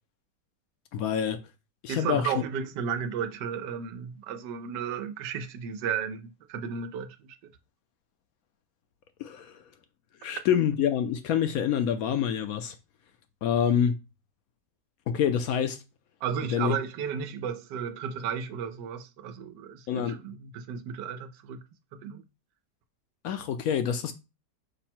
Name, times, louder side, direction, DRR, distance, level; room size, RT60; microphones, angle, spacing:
voice 1, 0.9-1.4 1.8-2.3 9.2-9.6 10.2-12.7 13.4-14.0 15.1-15.8 16.4-16.8 19.9-20.2 23.2-24.1, left 8 dB, 70° left, 0.9 m, -26 dB
voice 2, 1.9-7.5 16.2-21.6 22.0-22.2, right 7 dB, 90° right, 1.3 m, -34 dB
5.5 x 2.1 x 4.3 m
omnidirectional pair, 1.8 m